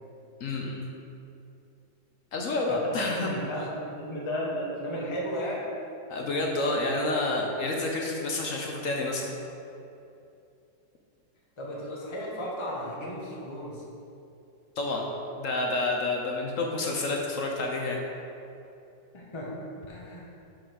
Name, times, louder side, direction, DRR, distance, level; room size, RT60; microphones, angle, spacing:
voice 1, 0.4-0.8 2.3-3.3 6.1-9.3 14.8-15.1 15.4-18.0, left 2 dB, 60° left, 0 dB, 0.9 m, -29 dB
voice 2, 2.7-5.7 11.6-13.8 19.1-20.3, equal, 20° left, -4 dB, 0.9 m, -34 dB
5.8 x 5.0 x 6.2 m, 2.7 s
omnidirectional pair, 2.1 m